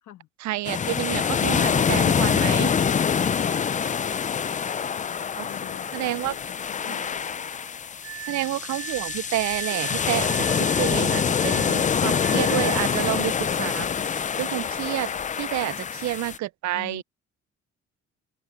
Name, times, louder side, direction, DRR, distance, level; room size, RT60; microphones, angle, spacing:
voice 1, 0.4-2.7 5.4-5.5 5.9-6.3 8.2-17.0, right 16 dB, 65° right, 0.5 m, -29 dB
sound 1, 0.7-16.4, left 7 dB, 25° left, 0.4 m, -25 dB
voice 2, 3.3-7.7 8.2-8.8 15.7-15.9 16.7-17.0, left 12 dB, 70° left, 1.4 m, -46 dB
Glass, 8.0-13.1, right 13 dB, 85° right, 1.6 m, -39 dB
cardioid pair, 90°, 30 cm